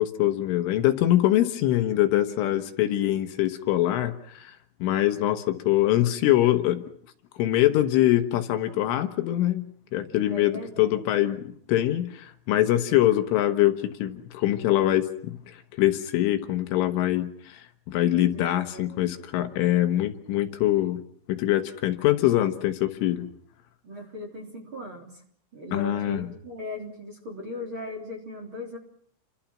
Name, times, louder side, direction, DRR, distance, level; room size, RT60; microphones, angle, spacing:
voice 1, 0.0-6.8 7.4-13.8 14.0-21.0 21.3-23.3 25.7-26.3, left 14 dB, 75° left, 7 dB, 3.6 m, -24 dB
voice 2, 10.3-11.0 18.1-19.1 23.8-25.2 25.5-28.8, left 1 dB, 30° right, 1 dB, 3.5 m, -38 dB
29.5 x 25.0 x 6.0 m, 0.64 s
omnidirectional pair, 6.0 m